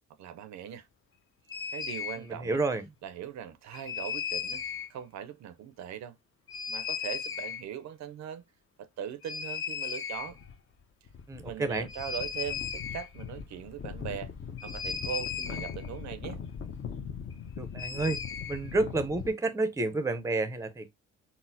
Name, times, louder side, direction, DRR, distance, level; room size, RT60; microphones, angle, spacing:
voice 1, 0.2-0.9 1.7-2.6 3.0-4.6 4.9-6.2 6.7-8.4 8.8-10.4 11.4-14.3 14.6-16.4, right 9 dB, 65° right, 0.5 m, -40 dB
sound 1, 1.5-2.2 3.7-4.9 6.5-7.6 9.2-10.5 10.8-10.9 11.1-19.3, left 6 dB, 45° left, 0.7 m, -37 dB
voice 2, 2.3-2.8 11.3-11.9 17.6-18.2 18.5-20.9, right 2 dB, 10° right, 0.5 m, -30 dB
4.0 x 2.0 x 2.6 m
cardioid pair, 90°, 30 cm